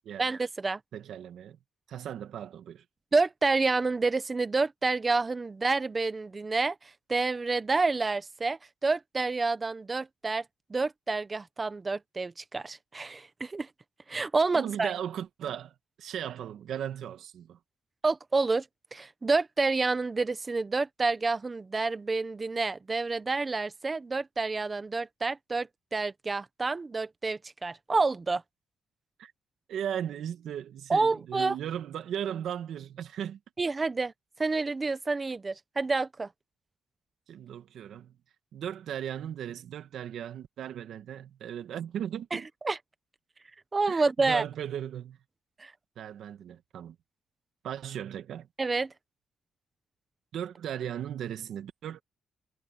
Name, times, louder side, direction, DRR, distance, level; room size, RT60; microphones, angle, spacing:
voice 1, 0.2-0.8 3.1-6.8 7.1-10.4 10.7-13.7 14.1-14.9 18.0-18.7 18.9-28.4 30.9-31.6 33.6-34.1 34.4-36.3 42.3-42.8 43.7-44.4 45.6-45.7 48.6-48.9, right 3 dB, 25° right, 0.9 m, -28 dB
voice 2, 0.9-1.6 1.9-2.8 14.5-17.6 29.2-29.3 29.7-33.4 37.3-38.1 38.5-42.5 43.9-45.2 46.0-47.0 47.6-48.5 50.3-52.0, right 9 dB, 70° right, 1.7 m, -37 dB
cardioid pair, 125°, 0 cm